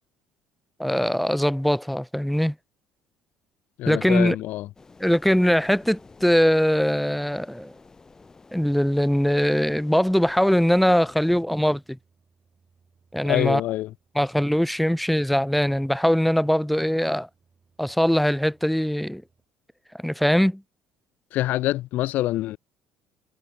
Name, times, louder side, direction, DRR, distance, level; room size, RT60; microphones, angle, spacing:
voice 1, 0.8-2.5 3.9-4.4 5.0-7.7 8.5-12.0 13.1-13.6 14.2-17.3 17.8-19.2 20.0-20.6, equal, ahead, 0.5 m, -21 dB
voice 2, 3.8-4.7 13.3-13.9 21.3-22.6, left 16 dB, 65° left, 0.5 m, -25 dB
sound 1, 4.7-11.4, left 4 dB, 20° left, 2.0 m, -50 dB
sound 2, 11.5-19.5, right 5 dB, 25° right, 7.7 m, -65 dB
cardioid pair, 125°, 3 cm